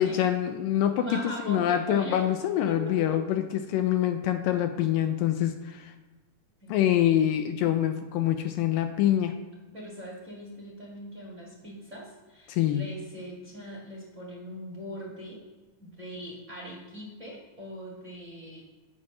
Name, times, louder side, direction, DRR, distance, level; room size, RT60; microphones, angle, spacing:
voice 1, 0.0-5.9 6.7-9.3 12.5-12.8, left 11 dB, 80° left, 8 dB, 2.2 m, -25 dB
voice 2, 1.0-2.2 2.6-3.1 6.6-6.8 9.7-15.4 15.8-18.6, equal, 25° right, -4 dB, 1.7 m, -40 dB
9.5 x 6.1 x 6.1 m, 1.2 s
omnidirectional pair, 4.1 m